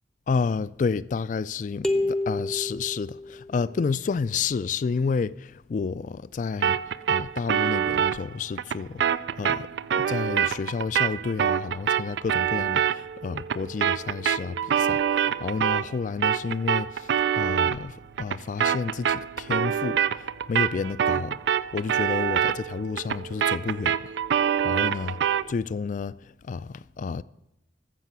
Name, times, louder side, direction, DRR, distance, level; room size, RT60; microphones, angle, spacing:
voice 1, 0.3-6.8 7.1-9.7 10.0-25.2 25.5-27.2, left 5 dB, 45° left, 0.3 m, -30 dB
sound 1, 1.8-3.7, left 2 dB, 5° left, 0.6 m, -29 dB
sound 2, 6.6-16.0 16.2-25.5, right 8 dB, 75° right, 0.3 m, -26 dB
13.5 x 7.6 x 6.0 m
head